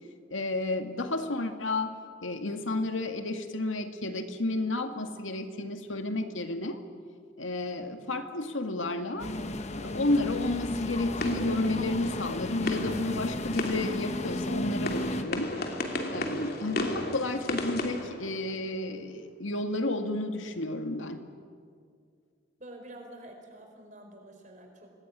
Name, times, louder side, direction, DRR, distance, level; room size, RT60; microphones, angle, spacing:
voice 1, 0.3-6.8 7.4-9.3 9.8-15.6 16.1-21.2, left 2 dB, 90° left, 6 dB, 2.2 m, -31 dB
sound 1, 9.2-15.2, left 1 dB, 35° left, 1.1 m, -33 dB
sound 2, 9.8-18.9, left 1 dB, 50° left, 2.9 m, -36 dB
voice 2, 22.6-24.9, right 1 dB, 40° right, 3 dB, 4.9 m, -48 dB
26.0 x 20.5 x 9.9 m, 2.1 s
head